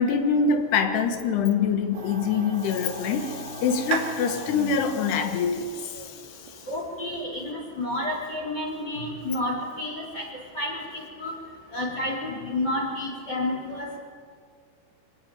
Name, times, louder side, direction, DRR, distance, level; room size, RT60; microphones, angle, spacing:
voice 1, 0.0-6.6, left 6 dB, 85° left, 7 dB, 3.5 m, -25 dB
sound 1, 1.9-6.9, right 5 dB, 80° right, 4.1 m, -36 dB
voice 2, 6.7-10.2 10.5-11.3 11.7-14.0, left 1 dB, 25° left, -1 dB, 3.9 m, -30 dB
25.0 x 18.5 x 9.1 m, 2.1 s
omnidirectional pair, 4.6 m